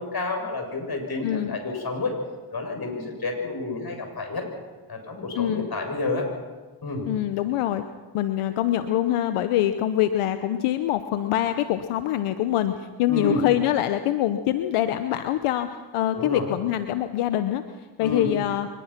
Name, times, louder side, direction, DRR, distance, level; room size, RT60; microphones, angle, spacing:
voice 1, 0.0-2.1 2.5-4.4 4.9-6.3 6.8-7.0 13.1-13.4 16.1-16.5 18.0-18.3, left 3 dB, 45° left, 3 dB, 7.8 m, -29 dB
voice 2, 1.2-1.6 5.4-5.7 7.1-7.8 8.1-15.7 15.9-17.6 18.0-18.7, left 12 dB, 85° left, 9 dB, 1.1 m, -24 dB
25.0 x 21.5 x 6.0 m, 1.3 s
supercardioid pair, 50°, 50 cm